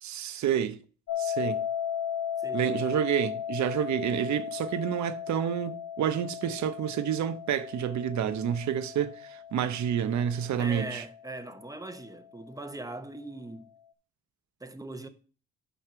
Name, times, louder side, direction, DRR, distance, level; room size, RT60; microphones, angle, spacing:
voice 1, 0.0-0.8 1.2-1.6 2.5-11.0, right 9 dB, 70° right, 0.9 m, -29 dB
sound 1, 1.1-12.0, left 9 dB, 75° left, 1.2 m, -36 dB
voice 2, 2.4-2.9 10.6-13.7 14.6-15.1, right 2 dB, 10° right, 1.1 m, -40 dB
9.2 x 5.6 x 4.6 m
cardioid pair, 90°, 30 cm